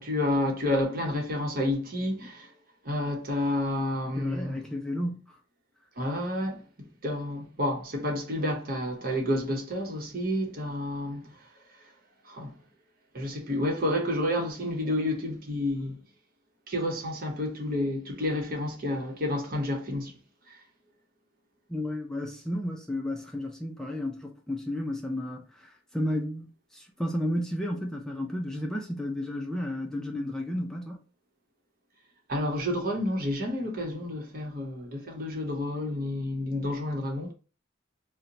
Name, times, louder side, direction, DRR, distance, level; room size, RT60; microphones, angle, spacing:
voice 1, 0.0-2.5 2.8-4.6 6.0-6.6 7.0-11.3 12.3-12.5 13.1-16.0 16.7-20.1 20.5-20.6 32.3-37.3, left 1 dB, 55° right, 0.9 m, -30 dB
voice 2, 4.2-5.4 21.7-31.0, left 1 dB, 5° left, 0.4 m, -32 dB
2.7 x 2.1 x 3.8 m
head